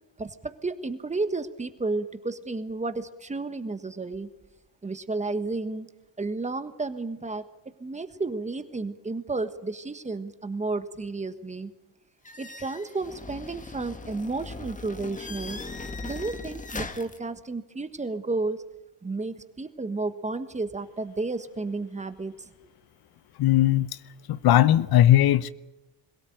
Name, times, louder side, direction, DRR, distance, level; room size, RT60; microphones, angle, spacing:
voice 1, 0.2-4.3 4.8-5.9 6.2-7.4 7.8-11.7 12.4-15.6 16.0-18.6 19.0-22.5, right 3 dB, 15° right, 1.4 m, -32 dB
sound 1, 12.2-17.2, left 3 dB, 20° left, 1.7 m, -39 dB
voice 2, 23.4-23.9 24.3-25.5, left 13 dB, 60° left, 0.8 m, -19 dB
22.0 x 17.5 x 9.1 m
cardioid pair, 120°, 42 cm